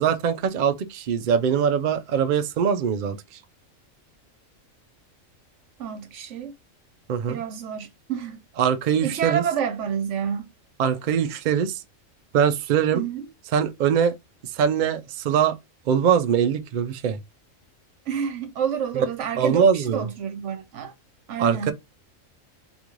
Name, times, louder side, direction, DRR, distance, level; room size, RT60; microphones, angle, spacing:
voice 1, 0.0-3.2 7.1-7.4 8.6-9.4 10.8-11.8 12.3-13.0 13.5-14.1 14.5-15.6 15.9-17.2 18.9-19.1 19.4-20.1 21.4-21.7, right 7 dB, 85° right, 0.4 m, -22 dB
voice 2, 5.8-6.5 7.3-8.4 9.0-10.5 12.9-13.3 18.1-20.9 21.3-21.7, right 8 dB, 65° right, 1.0 m, -29 dB
3.0 x 3.0 x 2.4 m
omnidirectional pair, 1.4 m